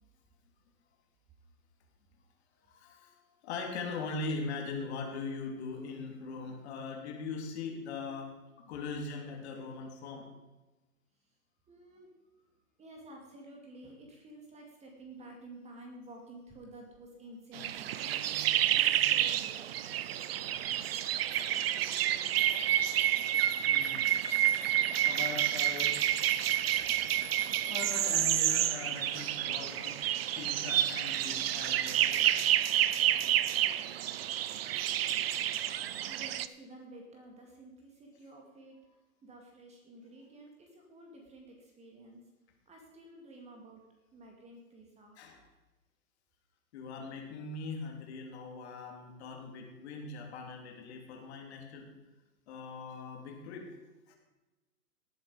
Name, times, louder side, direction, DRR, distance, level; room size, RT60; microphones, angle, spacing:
voice 1, 2.7-3.1 3.4-10.3 21.8-21.9 23.6-24.7 25.0-26.0 27.7-30.0 30.4-32.3 36.0-36.1 45.2-45.4 46.7-51.9 52.5-53.7 54.1-54.2, left 4 dB, 45° left, 1 dB, 3.2 m, -41 dB
voice 2, 11.7-12.1 12.4-12.5 12.8-19.7 36.1-42.3 42.7-43.8 44.1-45.2, right 1 dB, 15° right, 1 dB, 2.4 m, -52 dB
sound 1, 17.5-36.5, right 11 dB, 40° right, 0.6 m, -29 dB
18.5 x 8.0 x 5.0 m, 1.1 s
figure-of-eight pair, 120°, 45 cm